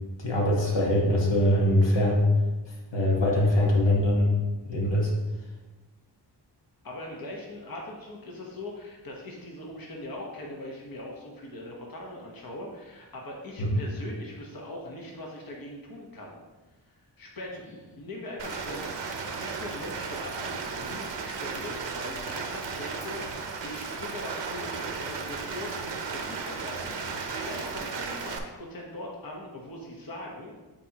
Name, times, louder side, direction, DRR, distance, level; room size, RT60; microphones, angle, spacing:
voice 1, 0.2-2.3 2.9-4.4 4.7-5.1 13.6-13.8, left 1 dB, 75° left, -2 dB, 1.3 m, -23 dB
voice 2, 6.8-16.4 16.9-30.5, left 1 dB, 50° left, -1 dB, 1.1 m, -41 dB
Rain, 18.4-28.4, right 5 dB, 80° right, 0.7 m, -35 dB
8.1 x 4.2 x 2.8 m, 1.2 s
wide cardioid pair, 70°, 43 cm